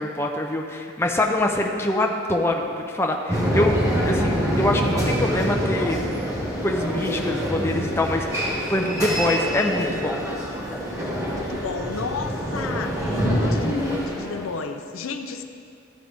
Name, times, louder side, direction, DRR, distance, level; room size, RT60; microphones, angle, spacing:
voice 1, 0.0-3.8 4.1-6.0 6.6-10.2, left 1 dB, 10° left, 1 dB, 0.4 m, -24 dB
sound 1, 3.3-14.6, equal, 15° right, 1.2 m, -25 dB
voice 2, 11.3-15.4, left 4 dB, 70° left, 7 dB, 0.5 m, -32 dB
13.0 x 5.1 x 3.4 m, 2.3 s
head